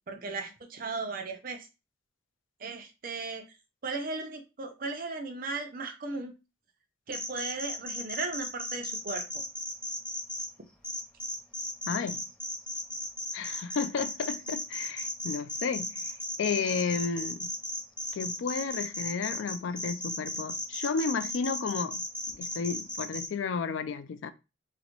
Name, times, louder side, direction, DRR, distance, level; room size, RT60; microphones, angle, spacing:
voice 1, 0.1-1.7 2.6-3.6 3.8-6.3 7.1-9.4, right 3 dB, 45° right, 0.6 m, -36 dB
sound 1, 7.1-10.5 10.8-23.3, left 1 dB, 5° left, 0.5 m, -35 dB
voice 2, 11.9-12.2 13.3-16.1 16.4-17.5 18.1-22.0 22.3-24.3, left 5 dB, 70° left, 0.4 m, -32 dB
3.9 x 2.1 x 2.9 m
head